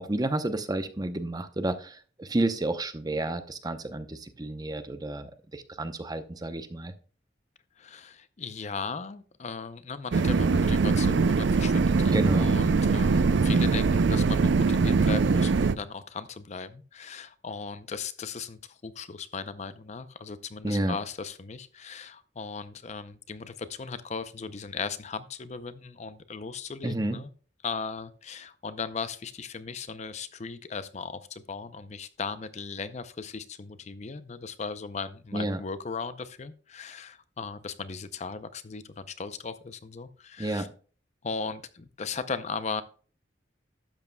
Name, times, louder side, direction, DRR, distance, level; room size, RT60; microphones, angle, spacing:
voice 1, 0.0-6.9 12.1-12.5 20.6-21.0 26.8-27.2 35.3-35.6 40.4-40.7, right 2 dB, 20° right, 9 dB, 0.7 m, -30 dB
voice 2, 7.8-27.3 27.6-40.7 41.2-42.8, left 5 dB, 40° left, 13 dB, 0.5 m, -37 dB
sound 1, 10.1-15.7, right 4 dB, 65° right, 0.4 m, -22 dB
12.0 x 8.3 x 2.2 m, 0.40 s
head